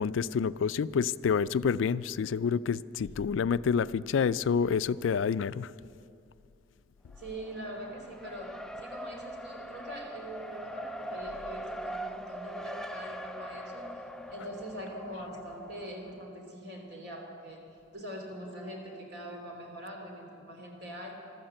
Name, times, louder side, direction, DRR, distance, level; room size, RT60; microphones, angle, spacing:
voice 1, 0.0-5.7, left 6 dB, 85° left, 17 dB, 0.3 m, -28 dB
Race car auto racing, 7.1-16.2, right 1 dB, 5° left, 0.4 m, -42 dB
voice 2, 7.2-13.9 14.3-17.6 17.9-21.2, equal, 60° right, 1 dB, 3.0 m, -43 dB
14.5 x 12.5 x 7.8 m, 2.5 s
head